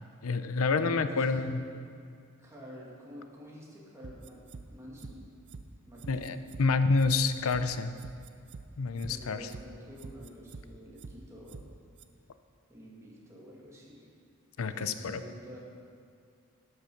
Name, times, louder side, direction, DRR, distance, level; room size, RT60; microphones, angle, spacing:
voice 1, 0.2-1.6 6.1-7.9 8.8-9.5 14.6-15.2, left 4 dB, 85° left, 11 dB, 0.6 m, -28 dB
voice 2, 0.8-1.5 2.4-5.2 5.9-6.4 9.0-11.7 12.7-14.1 14.6-15.6, equal, 15° right, -4 dB, 2.0 m, -48 dB
sound 1, 4.0-4.6 5.0-5.1 5.5-5.6 6.0-6.6 7.0-7.1 7.5-7.6 8.0-8.6 9.0-9.1 9.5-9.6 10.0-10.6 11.0-11.1 11.5-11.6 12.0-12.1, right 4 dB, 55° right, 0.5 m, -45 dB
12.0 x 6.7 x 5.9 m, 2.3 s
head